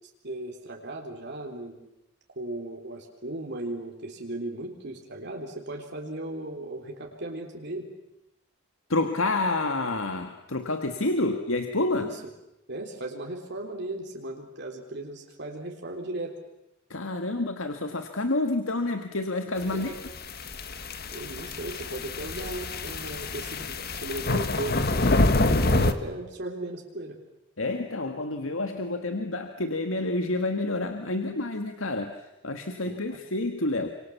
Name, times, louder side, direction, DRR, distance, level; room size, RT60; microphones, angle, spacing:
voice 1, 0.2-1.8 2.4-7.9 11.9-12.2 12.7-16.4 19.7-20.0 21.1-27.2 32.8-33.2, right 2 dB, 60° right, 1 dB, 3.7 m, -37 dB
voice 2, 8.9-12.1 16.9-19.9 27.6-33.9, left 2 dB, 85° left, 6 dB, 1.9 m, -28 dB
sound 1, 19.8-25.9, left 2 dB, 50° left, 1.8 m, -26 dB
29.5 x 26.5 x 7.3 m, 0.91 s
head